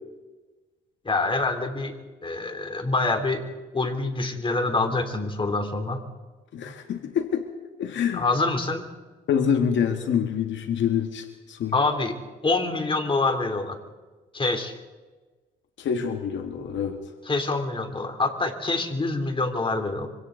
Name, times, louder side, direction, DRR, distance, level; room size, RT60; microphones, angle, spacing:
voice 1, 1.1-2.0 2.2-3.4 3.7-6.0 8.1-8.8 11.7-12.1 12.4-13.8 14.3-14.7 17.3-20.1, left 3 dB, 25° left, 5 dB, 3.4 m, -26 dB
voice 2, 6.5-7.5 7.8-8.3 9.3-11.8 15.8-17.0, left 7 dB, 70° left, 5 dB, 1.9 m, -26 dB
26.0 x 25.5 x 4.0 m, 1.2 s
cardioid pair, 90°, 20 cm